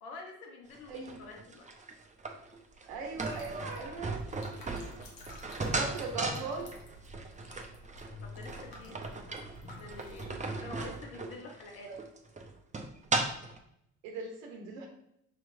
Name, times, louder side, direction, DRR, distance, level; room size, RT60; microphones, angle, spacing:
voice 1, 0.0-1.7 8.2-9.1 9.8-11.9, left 3 dB, 85° left, 1 dB, 0.8 m, -47 dB
sound 1, 0.7-13.6, right 3 dB, 20° right, 0.7 m, -37 dB
voice 2, 0.9-1.2 2.9-4.2 4.6-4.9 5.6-6.7 10.8-10.9 11.8-12.0 14.0-14.9, right 4 dB, 85° right, 1 dB, 0.8 m, -39 dB
sound 2, 3.1-10.3, left 2 dB, 60° left, 1.2 m, -49 dB
6.0 x 3.0 x 2.5 m, 0.77 s
hypercardioid pair, 55°, 41 cm